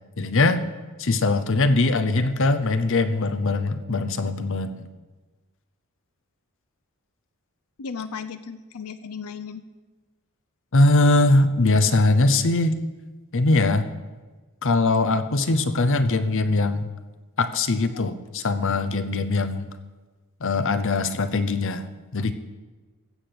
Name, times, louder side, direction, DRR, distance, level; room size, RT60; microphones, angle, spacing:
voice 1, 0.2-0.6 1.0-4.9 10.7-12.8 13.3-13.9 14.6-16.9 17.4-19.7 20.4-21.8 22.1-22.3, left 2 dB, 60° left, 10 dB, 0.9 m, -21 dB
voice 2, 7.8-9.6 17.9-18.1, left 6 dB, 85° left, 10 dB, 0.6 m, -35 dB
15.0 x 6.0 x 8.0 m, 1.3 s
head